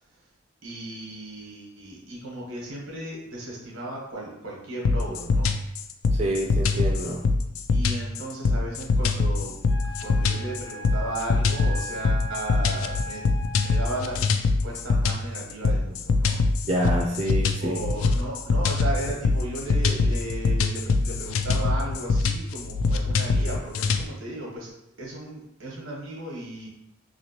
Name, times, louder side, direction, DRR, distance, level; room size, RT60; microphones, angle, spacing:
voice 1, 0.6-5.5 7.7-9.5 10.0-13.3 13.5-14.2 14.6-16.4 17.6-24.7 25.0-26.7, right 2 dB, 85° right, -3 dB, 1.1 m, -35 dB
sound 1, 4.9-24.0, left 3 dB, 85° left, 0.3 m, -23 dB
voice 2, 6.1-7.2 16.7-17.8, right 1 dB, 30° right, -1 dB, 0.3 m, -27 dB
Wind instrument woodwind instrument, 9.6-14.2, left 1 dB, 65° left, 1.2 m, -39 dB
3.0 x 2.9 x 2.9 m, 0.82 s
head